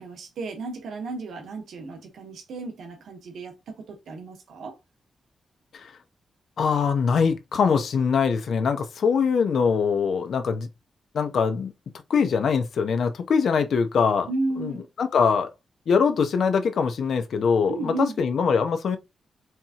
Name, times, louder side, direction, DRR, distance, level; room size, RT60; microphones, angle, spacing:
voice 1, 0.0-4.7 14.3-14.8 17.7-18.2, right 2 dB, 90° right, 1.1 m, -33 dB
voice 2, 6.6-10.7 11.1-11.7 12.1-14.3 14.6-14.7 15.0-15.5 15.9-19.0, left 6 dB, 70° left, 0.7 m, -23 dB
4.6 x 3.5 x 2.9 m
wide cardioid pair, 115°, 0 cm